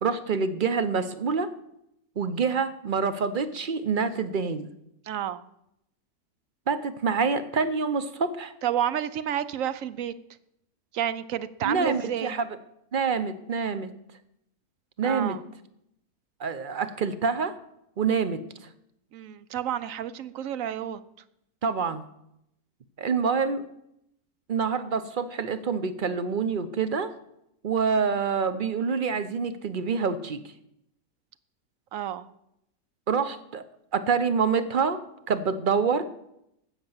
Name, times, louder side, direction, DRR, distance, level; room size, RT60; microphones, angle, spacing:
voice 1, 0.0-1.5 2.2-4.7 6.7-8.5 11.6-12.6 12.9-13.9 15.0-15.4 16.4-17.6 18.0-18.4 21.6-22.0 23.0-23.6 24.5-27.1 27.6-30.4 33.1-33.6 33.9-35.0 35.3-36.0, right 5 dB, 45° right, 12 dB, 0.8 m, -26 dB
voice 2, 5.1-5.4 8.6-10.1 10.9-12.3 15.0-15.4 19.1-21.0 31.9-32.3, right 10 dB, 70° right, 15 dB, 1.0 m, -30 dB
15.5 x 6.0 x 7.2 m, 0.79 s
omnidirectional pair, 1.6 m